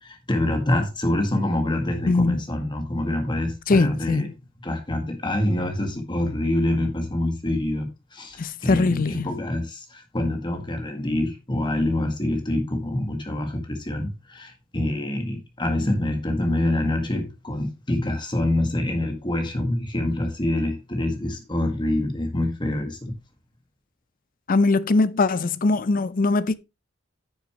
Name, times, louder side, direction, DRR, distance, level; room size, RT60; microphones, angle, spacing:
voice 1, 0.0-4.3 4.6-23.1, left 1 dB, 25° left, 1.7 m, -26 dB
voice 2, 2.1-2.4 3.7-4.2 8.4-9.3 24.5-26.5, left 3 dB, 45° left, 0.5 m, -21 dB
9.6 x 6.7 x 3.0 m
head